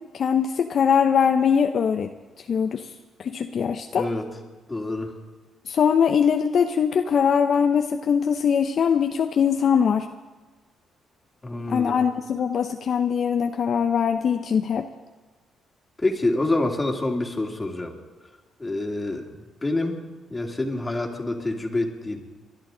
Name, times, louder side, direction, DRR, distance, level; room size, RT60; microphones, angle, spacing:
voice 1, 0.1-2.1 2.4-2.9 3.2-4.1 5.7-10.1 11.7-14.9, left 7 dB, 55° left, 6 dB, 0.7 m, -22 dB
voice 2, 3.9-4.2 4.7-5.1 11.4-11.9 16.0-17.9 18.6-20.0 20.3-22.2, left 2 dB, 20° left, 1 dB, 2.7 m, -27 dB
29.5 x 11.5 x 3.9 m, 1.3 s
cardioid pair, 90°, 0 cm